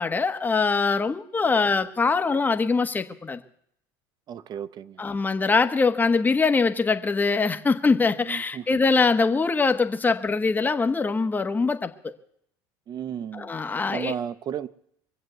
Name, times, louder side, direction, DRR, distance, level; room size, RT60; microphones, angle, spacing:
voice 1, 0.0-3.4 5.0-11.9 13.3-14.1, left 4 dB, 15° left, 1.3 m, -23 dB
voice 2, 4.3-5.1 8.2-8.8 12.9-13.5 13.9-14.7, right 9 dB, 40° right, 0.9 m, -34 dB
23.0 x 7.7 x 8.0 m
supercardioid pair, 110°, 10 cm